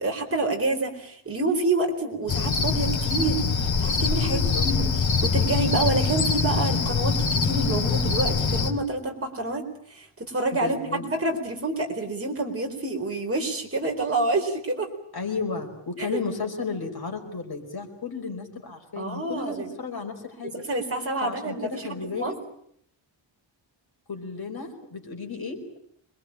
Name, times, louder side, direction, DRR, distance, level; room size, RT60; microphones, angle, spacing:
voice 1, 0.0-3.5 3.8-4.9 5.2-9.6 9.9-14.9 16.0-16.2 19.0-19.7 20.7-22.3, right 2 dB, 30° right, 2 dB, 4.3 m, -28 dB
Cricket, 2.3-8.7, left 5 dB, 80° left, 2.7 m, -24 dB
voice 2, 4.3-4.6 10.5-11.0 15.1-20.5 21.2-22.4 24.1-25.6, left 4 dB, 50° left, 3 dB, 5.0 m, -33 dB
26.5 x 21.5 x 8.8 m, 0.69 s
wide cardioid pair, 145°, 46 cm